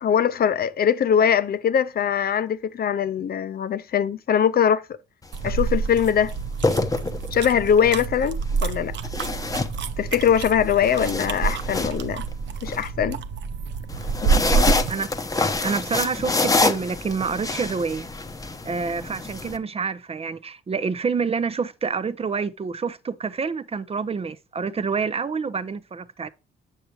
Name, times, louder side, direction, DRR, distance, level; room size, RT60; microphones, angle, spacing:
voice 1, 0.0-4.8 5.4-6.3 7.3-8.9 10.0-12.2 12.6-13.2 14.2-14.3, left 8 dB, 50° left, 0.6 m, -22 dB
sound 1, 5.2-5.5 6.4-7.6 9.0-10.3 10.7-12.8 13.9-19.6, left 3 dB, 15° left, 0.8 m, -26 dB
sound 2, 5.3-15.0, right 5 dB, 65° right, 0.8 m, -27 dB
voice 2, 15.6-18.1 18.6-26.3, right 5 dB, 30° right, 0.6 m, -27 dB
7.6 x 6.5 x 2.8 m
cardioid pair, 90°, 20 cm